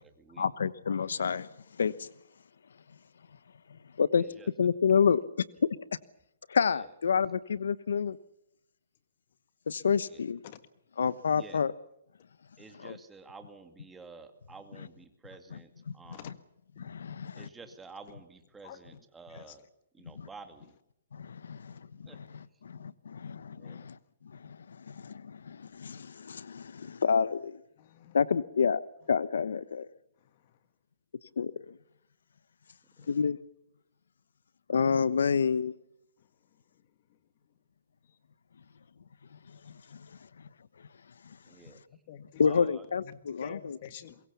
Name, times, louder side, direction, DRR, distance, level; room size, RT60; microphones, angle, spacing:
voice 1, 0.4-1.5 1.8-2.1 4.0-4.2 4.6-5.5 6.5-8.2 9.7-10.4 11.0-11.7 12.8-13.0 14.7-14.9 15.5-15.6 15.9-16.0 16.2-16.3 16.8-17.5 20.2-20.3 21.1-21.7 22.0-24.0 24.4-27.6 28.1-29.9 31.4-31.7 33.1-33.4 34.7-35.7 39.9-40.0 42.4-43.8, left 6 dB, 85° left, 1.1 m, -29 dB
voice 2, 12.6-15.7 16.0-16.3 17.4-19.6 20.0-20.6 22.1-22.2 23.6-23.7 41.5-41.8 43.4-43.6, right 4 dB, 5° right, 2.1 m, -50 dB
voice 3, 18.6-19.0 19.3-19.6 27.8-28.2 42.1-42.4 43.1-44.2, left 11 dB, 40° left, 1.6 m, -48 dB
24.0 x 22.5 x 7.0 m
hypercardioid pair, 165°, 0 cm